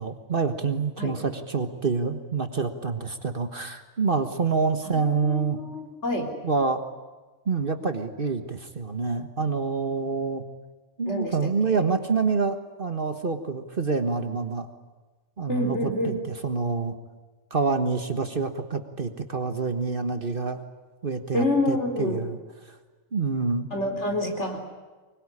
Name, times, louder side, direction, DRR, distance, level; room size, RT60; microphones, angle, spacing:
voice 1, 0.0-5.6 6.4-6.8 7.5-10.4 11.0-14.7 15.4-16.9 17.5-20.6 21.0-22.4 22.7-22.8 23.1-23.7, right 4 dB, 45° right, 8 dB, 1.6 m, -27 dB
voice 2, 5.2-6.3 11.1-11.8 15.5-16.2 21.3-22.2 23.7-24.7, left 2 dB, 60° left, 3 dB, 4.4 m, -27 dB
24.5 x 21.0 x 9.9 m, 1.3 s
omnidirectional pair, 1.3 m